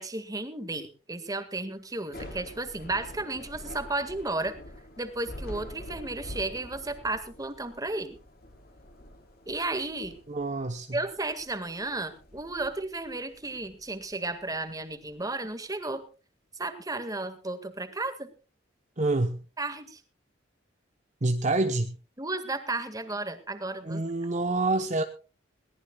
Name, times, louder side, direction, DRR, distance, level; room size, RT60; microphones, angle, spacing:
voice 1, 0.0-4.5 5.0-8.2 9.5-10.2 10.9-16.0 16.6-18.3 19.6-20.0 22.2-24.0, right 2 dB, 20° right, 10 dB, 1.8 m, -33 dB
Thunder / Rain, 1.9-15.1, left 1 dB, 55° left, 3.5 m, -46 dB
voice 2, 10.3-11.0 19.0-19.4 21.2-22.0 23.8-25.0, right 2 dB, 40° right, 7 dB, 1.0 m, -27 dB
21.5 x 18.0 x 2.3 m, 0.34 s
head